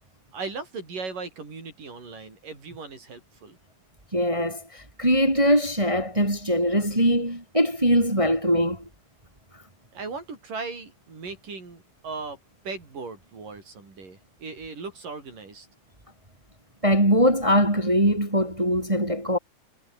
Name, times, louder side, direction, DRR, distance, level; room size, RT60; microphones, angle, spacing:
voice 1, 0.3-3.6 9.9-12.4 12.7-15.7, right 4 dB, 50° right, 8.6 m, -37 dB
voice 2, 4.1-4.6 5.0-8.8 16.8-19.4, equal, 10° right, 2.3 m, -21 dB
omnidirectional pair, 4.9 m